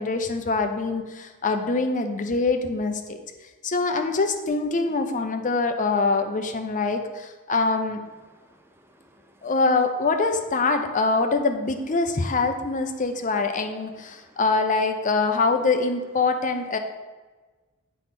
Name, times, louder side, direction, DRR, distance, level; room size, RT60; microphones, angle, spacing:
voice 1, 0.0-3.2 3.6-8.0 9.4-16.8, left 3 dB, 35° left, 6 dB, 0.6 m, -24 dB
voice 2, 8.3-9.6 13.9-14.4, equal, 10° right, 5 dB, 0.5 m, -58 dB
9.5 x 3.6 x 5.9 m, 1.3 s
head